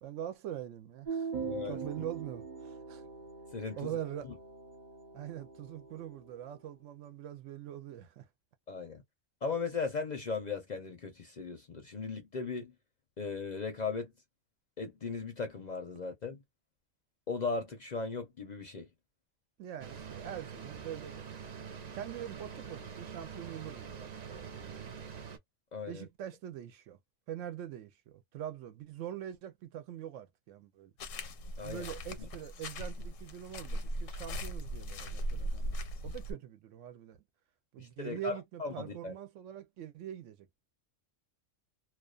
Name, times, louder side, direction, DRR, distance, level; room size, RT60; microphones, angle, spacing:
voice 1, 0.0-1.3 1.6-3.0 3.8-4.3 5.1-8.3 19.6-21.2 21.9-24.9 25.9-27.0 27.3-30.9 31.6-37.2 37.7-40.4, right 11 dB, 75° right, 0.9 m, -43 dB
sound 1, 1.0-6.4, right 5 dB, 40° right, 0.9 m, -42 dB
voice 2, 1.4-1.8 3.5-4.0 4.2-4.3 8.7-9.0 9.4-12.7 13.2-14.1 14.8-16.4 17.3-18.9 25.7-26.1 31.6-31.8 32.2-32.3 37.8-39.1, left 4 dB, 45° left, 0.6 m, -37 dB
sound 2, 19.8-25.4, right 6 dB, 55° right, 0.4 m, -45 dB
sound 3, 31.0-36.3, equal, 80° left, 1.0 m, -38 dB
2.3 x 2.2 x 2.3 m
omnidirectional pair, 1.3 m